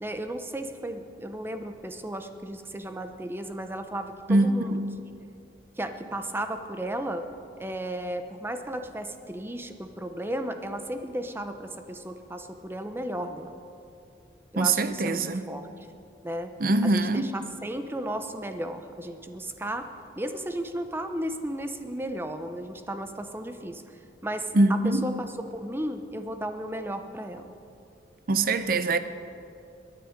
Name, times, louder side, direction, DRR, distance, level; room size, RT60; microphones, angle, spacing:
voice 1, 0.0-4.8 5.8-7.3 7.6-13.5 14.5-15.2 15.5-15.6 16.2-16.5 16.8-19.9 20.2-23.8 24.2-25.1 25.5-27.5, right 1 dB, 15° right, 0.7 m, -34 dB
voice 2, 4.3-4.8 14.6-15.5 16.6-17.3 24.5-25.1 28.3-29.0, right 2 dB, 55° right, 0.7 m, -23 dB
21.5 x 9.9 x 5.2 m
head